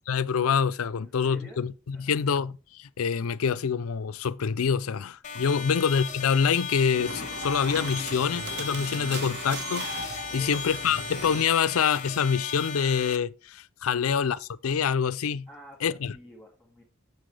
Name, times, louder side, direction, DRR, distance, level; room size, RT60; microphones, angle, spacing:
voice 1, 0.1-15.5 15.8-16.1, left 6 dB, 85° left, 0.5 m, -26 dB
voice 2, 1.0-1.7 1.9-2.2 5.6-5.8 10.3-11.0 15.5-16.8, left 1 dB, ahead, 2.3 m, -49 dB
sound 1, 5.2-13.2, left 6 dB, 35° left, 0.8 m, -37 dB
sound 2, 6.9-11.5, right 2 dB, 55° right, 1.4 m, -37 dB
7.7 x 6.9 x 3.3 m
head